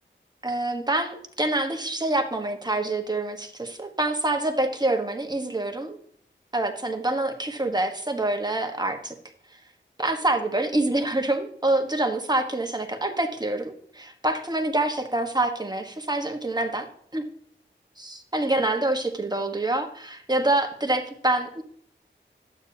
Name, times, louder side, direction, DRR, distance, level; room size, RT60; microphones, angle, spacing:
voice 1, 0.4-6.0 6.5-9.1 10.0-16.9 17.1-17.3 18.0-21.6, right 2 dB, 20° right, 4 dB, 1.4 m, -26 dB
12.0 x 8.7 x 2.9 m, 0.63 s
wide cardioid pair, 65°, 20 cm